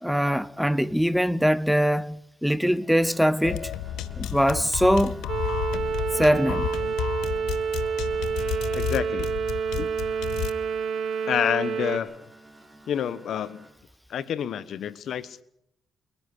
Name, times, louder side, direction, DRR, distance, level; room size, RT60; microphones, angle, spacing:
voice 1, 0.0-3.7 4.2-5.2 6.1-6.7, equal, ahead, 0.8 m, -22 dB
sound 1, 2.6-13.7, right 1 dB, 20° right, 6.7 m, -50 dB
sound 2, 3.4-10.5, left 11 dB, 85° left, 1.1 m, -32 dB
sound 3, 5.3-12.0, right 6 dB, 60° right, 3.5 m, -28 dB
voice 2, 8.7-9.3 9.8-9.9 11.3-12.3 12.9-13.7 14.1-15.4, left 9 dB, 65° left, 1.2 m, -28 dB
28.0 x 10.5 x 9.9 m
cardioid pair, 90°, 0 cm